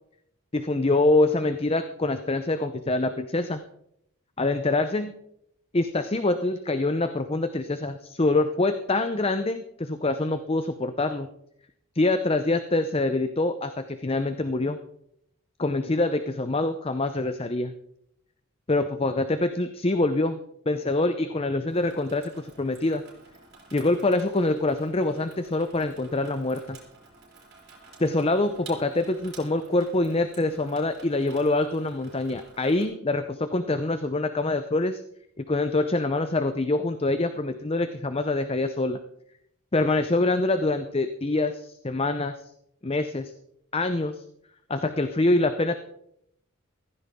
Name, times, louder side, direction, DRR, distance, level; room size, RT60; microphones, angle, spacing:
voice 1, 0.5-3.6 4.4-5.1 5.7-11.3 12.0-14.8 15.6-17.7 18.7-20.4 20.7-23.0 23.7-26.8 28.0-35.0 35.4-39.0 39.7-42.3 42.8-43.3 43.7-44.2 44.7-45.8, left 2 dB, 25° left, 10 dB, 0.6 m, -25 dB
Water tap faucet / Sink (filling or washing), 21.7-32.8, right 4 dB, 50° right, 5.1 m, -51 dB
15.5 x 15.0 x 3.6 m, 0.73 s
head